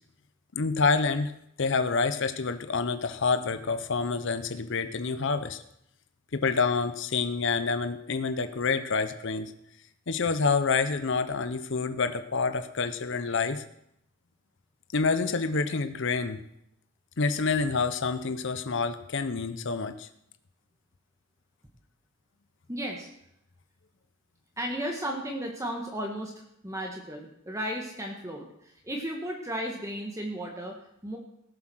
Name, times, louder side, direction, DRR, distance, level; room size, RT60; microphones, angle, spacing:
voice 1, 0.5-1.3 1.6-5.6 6.3-9.5 10.1-13.6 14.9-16.4 17.2-20.1, left 4 dB, 55° left, 10 dB, 0.7 m, -27 dB
voice 2, 22.7-23.1 24.6-26.3 26.6-30.7 31.0-31.2, equal, 15° right, 1 dB, 1.4 m, -34 dB
17.5 x 7.5 x 6.2 m, 0.76 s
head